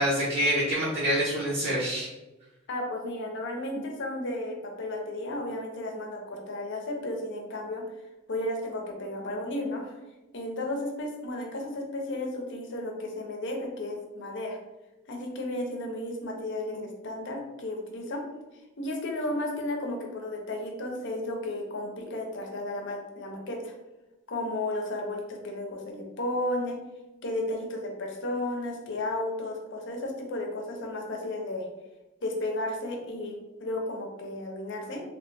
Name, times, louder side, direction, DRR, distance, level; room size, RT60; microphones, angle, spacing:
voice 1, 0.0-2.1, equal, 50° right, -9 dB, 0.8 m, -26 dB
voice 2, 2.7-7.8 8.3-10.0 10.3-14.6 15.1-18.2 18.8-23.7 24.3-26.8 27.2-31.7 32.2-35.0, left 1 dB, 60° left, 1 dB, 0.6 m, -33 dB
3.0 x 2.1 x 3.3 m, 1.0 s
head